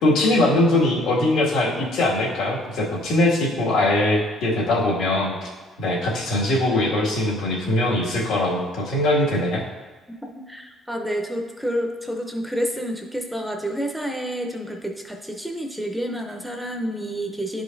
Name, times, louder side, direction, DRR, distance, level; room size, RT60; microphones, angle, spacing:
voice 1, 0.0-5.5 5.8-9.6, left 1 dB, 90° left, -4 dB, 1.9 m, -21 dB
voice 2, 10.2-17.6, equal, ahead, 3 dB, 0.5 m, -29 dB
11.0 x 4.9 x 2.6 m, 1.4 s
cardioid pair, 170°, 0 cm